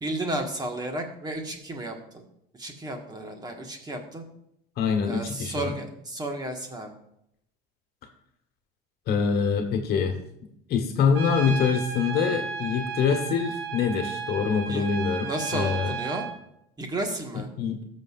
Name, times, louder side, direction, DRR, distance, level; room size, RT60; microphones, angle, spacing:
voice 1, 0.0-2.2 2.6-4.2 5.1-6.9 14.7-14.9 15.2-16.3 16.8-17.5, right 1 dB, 20° right, 3 dB, 1.5 m, -33 dB
voice 2, 4.8-5.8 9.1-10.2 10.7-16.0 17.3-17.8, left 6 dB, 55° left, 5 dB, 1.3 m, -25 dB
Trumpet, 11.2-16.4, right 5 dB, 75° right, 1.4 m, -34 dB
19.0 x 6.4 x 2.5 m, 0.78 s
cardioid pair, 125°, 20 cm